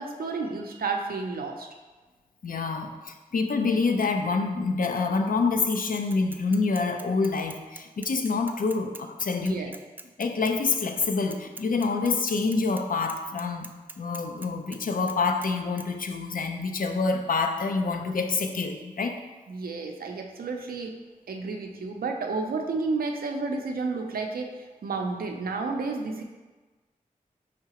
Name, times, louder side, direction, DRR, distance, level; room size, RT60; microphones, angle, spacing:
voice 1, 0.0-1.7 9.4-9.7 19.5-20.9 21.3-26.2, right 3 dB, 85° right, 2 dB, 0.5 m, -31 dB
voice 2, 2.4-9.6 10.2-13.7 14.0-19.2, left 4 dB, 70° left, 4 dB, 0.5 m, -27 dB
Bicycle / Mechanisms, 6.1-12.8 13.1-14.8 15.1-15.5 15.8-15.9, right 2 dB, 15° right, 0.3 m, -43 dB
4.7 x 3.5 x 2.9 m, 1.3 s
cardioid pair, 40°, 15 cm